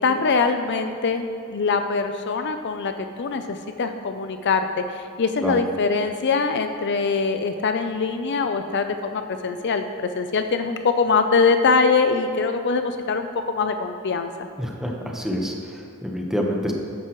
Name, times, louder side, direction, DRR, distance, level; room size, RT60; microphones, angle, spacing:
voice 1, 0.0-2.9 3.2-14.5, left 4 dB, 50° left, 7 dB, 0.5 m, -23 dB
voice 2, 14.6-16.7, equal, ahead, 0 dB, 1.0 m, -27 dB
13.5 x 10.0 x 3.1 m, 2.3 s
head